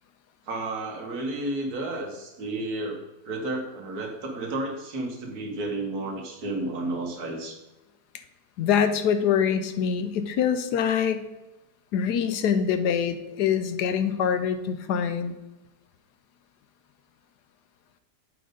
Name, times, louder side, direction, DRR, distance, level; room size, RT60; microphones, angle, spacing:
voice 1, 0.5-7.6, right 2 dB, 65° right, 2 dB, 1.7 m, -32 dB
voice 2, 8.6-11.2 11.9-15.3, left 7 dB, 90° left, 9 dB, 1.2 m, -24 dB
7.7 x 4.0 x 5.0 m, 1.0 s
omnidirectional pair, 1.7 m